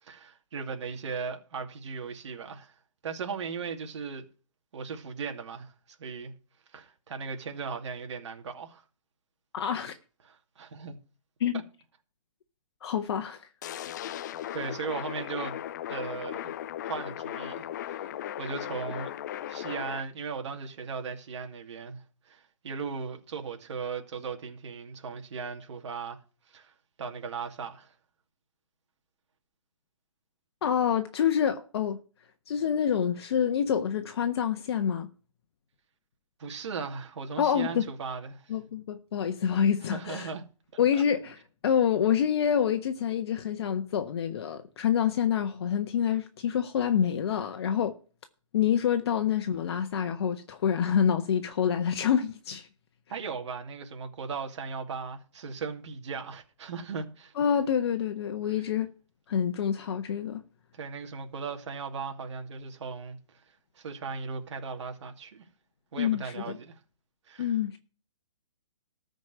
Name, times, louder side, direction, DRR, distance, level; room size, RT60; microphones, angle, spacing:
voice 1, 0.0-2.7 3.0-4.2 4.7-6.3 6.7-8.8 10.6-11.0 14.5-15.6 15.9-16.5 16.8-18.1 18.4-19.1 19.5-26.2 26.5-27.9 36.4-38.5 39.9-40.4 53.1-57.3 60.7-63.4 63.7-65.5 65.9-66.8 67.3-67.5, right 5 dB, 60° right, 2.6 m, -37 dB
voice 2, 9.5-10.0 11.4-11.6 12.8-13.5 30.6-32.0 32.5-35.1 37.4-37.9 38.5-40.3 40.8-48.0 48.5-52.7 57.3-58.9 59.3-60.4 66.0-66.6 67.4-67.8, left 8 dB, 50° left, 1.3 m, -27 dB
sound 1, 13.6-20.0, left 11 dB, 35° left, 0.5 m, -37 dB
14.0 x 5.3 x 6.5 m
hypercardioid pair, 155°, 17 cm